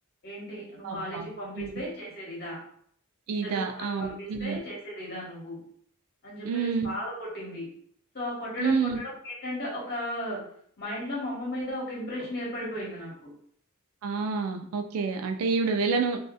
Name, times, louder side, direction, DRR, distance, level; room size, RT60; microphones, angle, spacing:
voice 1, 0.2-2.6 3.4-5.6 6.2-7.7 8.1-10.4 10.8-13.3, left 1 dB, 50° left, -5 dB, 1.0 m, -35 dB
voice 2, 0.8-1.3 1.6-1.7 3.3-4.6 6.4-6.9 8.6-9.0 14.0-16.2, right 5 dB, 90° right, 4 dB, 0.3 m, -28 dB
2.6 x 2.2 x 2.2 m, 0.64 s
head